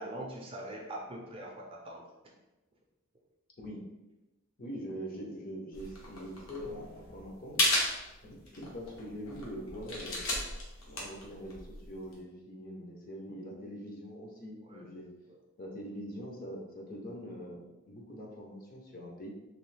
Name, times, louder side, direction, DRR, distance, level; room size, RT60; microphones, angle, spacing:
voice 1, 0.0-2.1 14.7-14.9 15.3-15.4, right 1 dB, 25° right, -1 dB, 0.4 m, -42 dB
voice 2, 4.6-7.7 8.2-10.2 10.9-15.1 15.6-19.3, equal, 40° left, -1 dB, 0.6 m, -43 dB
sound 1, 5.7-12.2, left 1 dB, 70° left, 0.9 m, -35 dB
3.0 x 2.8 x 3.2 m, 1.0 s
head